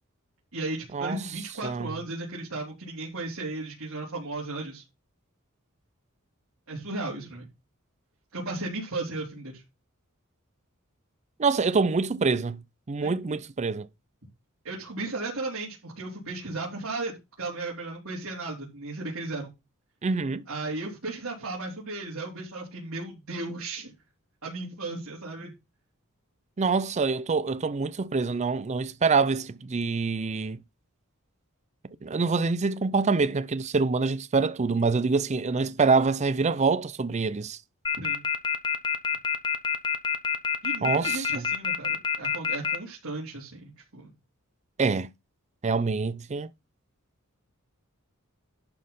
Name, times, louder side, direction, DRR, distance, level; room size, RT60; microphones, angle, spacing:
voice 1, 0.5-4.8 6.7-7.5 8.3-9.6 13.0-13.1 14.6-19.5 20.5-23.9 24.4-25.5 38.0-38.3 40.6-44.1, right 2 dB, 75° right, 3.3 m, -35 dB
voice 2, 1.6-1.9 11.4-12.6 12.9-13.9 20.0-20.4 26.6-30.6 32.0-37.6 40.8-41.4 44.8-45.1 45.6-46.5, right 4 dB, 30° right, 0.5 m, -25 dB
sound 1, 37.8-42.7, left 7 dB, 20° left, 0.8 m, -26 dB
11.5 x 4.2 x 5.5 m
head